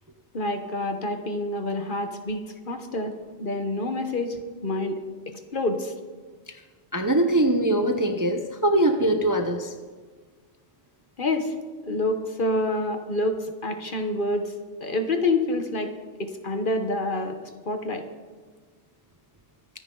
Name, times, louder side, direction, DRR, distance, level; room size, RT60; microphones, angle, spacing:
voice 1, 0.3-3.1 3.4-4.4 4.6-5.0 5.5-5.9 11.2-11.5 11.8-14.5 14.8-15.9 16.2-17.4 17.7-18.0, left 2 dB, 45° left, 6 dB, 1.3 m, -27 dB
voice 2, 6.9-9.7, right 1 dB, 20° right, 5 dB, 0.7 m, -22 dB
24.0 x 9.7 x 3.9 m, 1.5 s
omnidirectional pair, 1.2 m